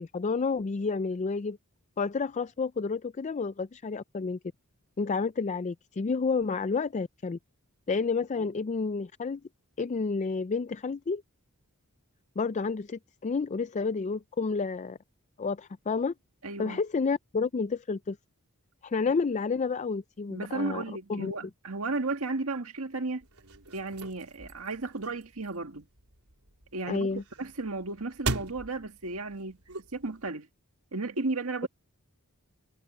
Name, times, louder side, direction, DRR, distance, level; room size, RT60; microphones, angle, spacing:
voice 1, 0.0-1.6 2.0-4.4 5.0-7.4 7.9-9.4 9.8-11.2 12.4-15.0 15.4-16.1 16.6-18.2 18.8-20.8 21.1-21.3 26.9-27.2, left 4 dB, 35° left, 0.4 m, -30 dB
voice 2, 16.4-16.8 20.3-23.2 23.7-25.8 26.7-29.6 29.9-30.5 30.9-31.7, right 3 dB, 70° right, 1.9 m, -34 dB
sound 1, 23.2-30.3, right 3 dB, 85° right, 4.1 m, -40 dB
head